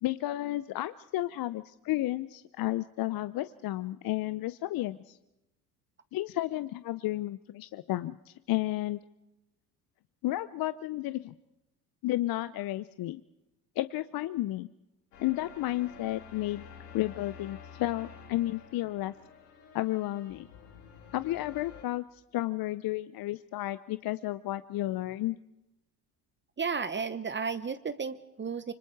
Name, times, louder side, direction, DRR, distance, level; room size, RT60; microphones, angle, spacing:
voice 1, 0.0-5.2 6.1-9.0 10.2-11.3 12.0-13.2 13.8-14.7 15.2-16.6 16.9-19.1 19.7-20.5 21.1-25.4, left 16 dB, 50° left, 14 dB, 0.8 m, -32 dB
sound 1, 15.1-21.8, left 7 dB, 85° left, 3.9 m, -50 dB
voice 2, 26.6-28.7, right 5 dB, 25° right, 13 dB, 1.1 m, -33 dB
26.0 x 25.0 x 4.8 m, 0.92 s
hypercardioid pair, 65°, 46 cm